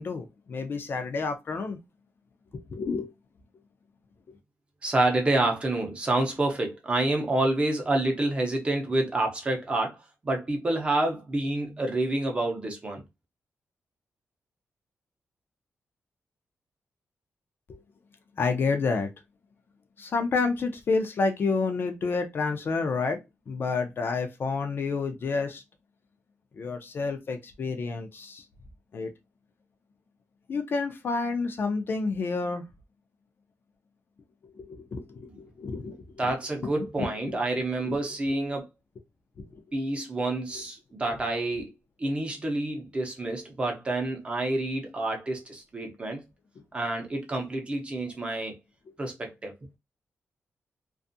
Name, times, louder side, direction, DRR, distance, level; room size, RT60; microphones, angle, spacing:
voice 1, 0.0-1.8 2.5-3.1 17.7-17.8 18.4-19.1 20.0-23.2 23.5-25.6 26.6-28.4 28.9-29.1 30.5-32.6 34.5-36.3 36.6-36.7 37.0-37.4 37.8-38.0 39.4-39.6 40.5-40.6, left 4 dB, 45° left, 0.4 m, -29 dB
voice 2, 4.8-13.0 36.2-38.7 39.7-41.7 42.0-46.2 46.7-48.5 49.0-49.5, right 2 dB, 25° right, 0.7 m, -28 dB
2.5 x 2.4 x 2.6 m
wide cardioid pair, 175°, 5 cm